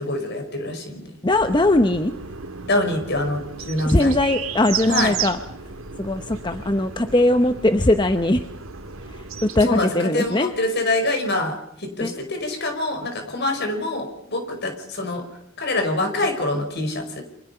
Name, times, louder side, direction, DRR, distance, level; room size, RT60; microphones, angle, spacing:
voice 1, 0.0-1.1 2.6-4.2 4.9-5.1 9.6-15.2 15.6-17.2, left 2 dB, 50° left, 5 dB, 5.1 m, -25 dB
voice 2, 1.2-2.1 3.8-5.4 6.0-8.5 9.1-10.5 12.0-12.2, left 1 dB, 20° left, 8 dB, 0.9 m, -20 dB
sound 1, 1.3-9.7, right 7 dB, 80° right, 2.1 m, -33 dB
29.0 x 25.0 x 5.7 m, 0.78 s
head